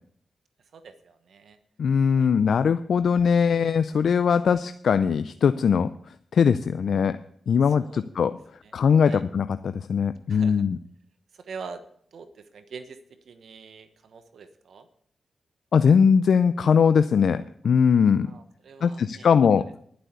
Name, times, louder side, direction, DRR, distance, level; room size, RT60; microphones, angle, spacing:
voice 1, 0.7-1.6 2.2-2.4 7.7-8.0 8.6-8.7 9.0-9.2 10.3-10.6 11.3-11.8 12.1-13.0 13.2-14.9 18.2-19.3, right 5 dB, 75° right, 10 dB, 1.1 m, -44 dB
voice 2, 1.8-5.9 6.3-7.2 7.5-8.3 8.7-10.8 15.7-18.3 18.8-19.6, left 6 dB, 75° left, 12 dB, 0.4 m, -20 dB
11.5 x 7.7 x 8.1 m, 0.63 s
supercardioid pair, 40°, 0 cm